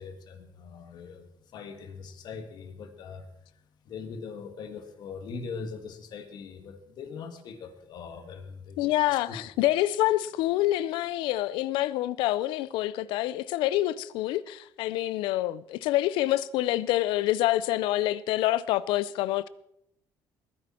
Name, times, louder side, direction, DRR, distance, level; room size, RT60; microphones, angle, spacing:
voice 1, 0.0-3.3 3.8-9.4, left 5 dB, 60° left, 1.9 m, -41 dB
voice 2, 8.8-19.5, left 15 dB, 90° left, 0.5 m, -27 dB
21.0 x 10.5 x 4.4 m
cardioid pair, 115°, 8 cm